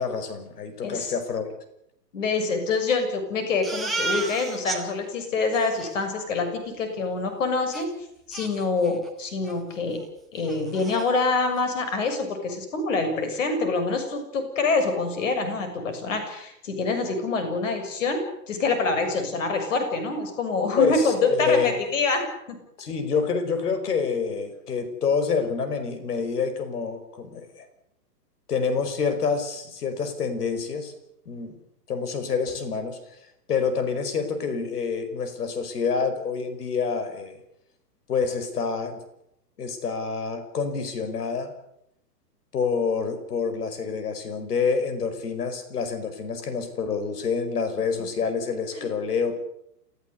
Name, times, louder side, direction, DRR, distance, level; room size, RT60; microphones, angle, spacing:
voice 1, 0.0-1.5 20.8-21.7 22.8-27.7 28.5-30.9 31.3-31.6 31.9-33.0 33.5-37.4 38.1-39.0 39.6-41.5 42.5-49.3, left 5 dB, 65° left, 10 dB, 5.4 m, -27 dB
voice 2, 0.8-1.1 2.1-7.9 8.3-10.0 10.3-18.2 18.5-22.6 48.7-48.9, left 3 dB, 50° left, 7 dB, 6.9 m, -26 dB
Crying sobbing, 3.6-4.8 5.2-5.3 5.5-5.9 7.7-7.8 8.3-9.1 9.4-9.6 10.0-10.1 10.4-11.1, right 3 dB, ahead, 1.3 m, -32 dB
28.5 x 15.0 x 8.3 m, 0.79 s
hypercardioid pair, 170°, 50 cm